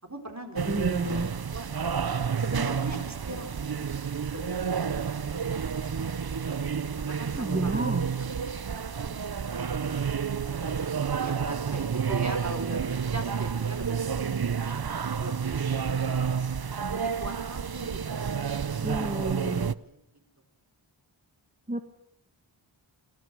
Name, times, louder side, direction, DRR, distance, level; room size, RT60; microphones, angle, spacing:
voice 1, 0.0-0.6 1.0-1.7 2.3-5.4 7.0-7.9 9.0-9.2 9.8-10.8 11.1-14.8 15.2-16.3 16.6-19.1 19.5-20.0, right 1 dB, 35° right, 3 dB, 4.2 m, -41 dB
sound 1, 0.6-19.7, right 6 dB, 50° right, 0.7 m, -30 dB
voice 2, 0.7-1.3 7.3-8.1 18.8-19.7 21.7-21.8, right 2 dB, 15° right, 6 dB, 1.4 m, -30 dB
24.5 x 17.0 x 6.2 m, 0.76 s
wide cardioid pair, 55°, 50 cm